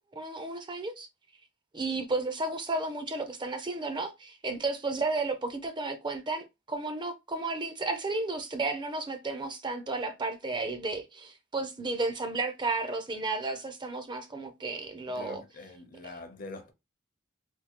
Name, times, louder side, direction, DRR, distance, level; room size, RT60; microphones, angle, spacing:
voice 1, 0.1-1.1 1.7-15.4, right 3 dB, 25° right, 0.5 m, -33 dB
voice 2, 15.1-16.7, left 2 dB, 45° left, 0.7 m, -44 dB
3.5 x 2.7 x 2.9 m
head